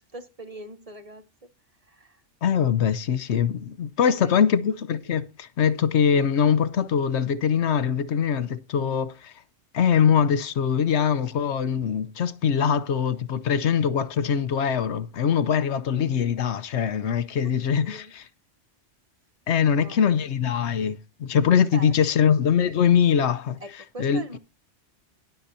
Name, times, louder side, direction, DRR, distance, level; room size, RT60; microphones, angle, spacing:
voice 1, 0.0-1.5 1.8-2.2 4.0-4.5 17.4-18.1 19.6-20.1 21.7-22.0 23.6-24.4, right 1 dB, 35° right, 0.9 m, -42 dB
voice 2, 2.4-9.3 9.7-18.2 19.5-23.6 24.0-24.2, left 7 dB, 70° left, 1.0 m, -22 dB
20.0 x 6.8 x 2.7 m
omnidirectional pair, 1.2 m